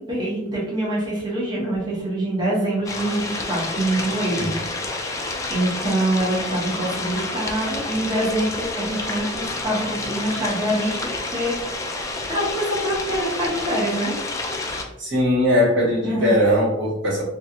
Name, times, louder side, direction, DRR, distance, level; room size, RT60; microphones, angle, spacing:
voice 1, 0.0-4.5 5.5-11.0 11.3-11.5 12.3-14.1 16.0-16.4, right 1 dB, 25° right, -6 dB, 0.9 m, -25 dB
sound 1, 2.9-14.8, left 2 dB, 15° left, 0.3 m, -29 dB
voice 2, 15.0-17.2, equal, 75° right, -6 dB, 1.3 m, -20 dB
3.1 x 2.3 x 2.8 m, 0.92 s
head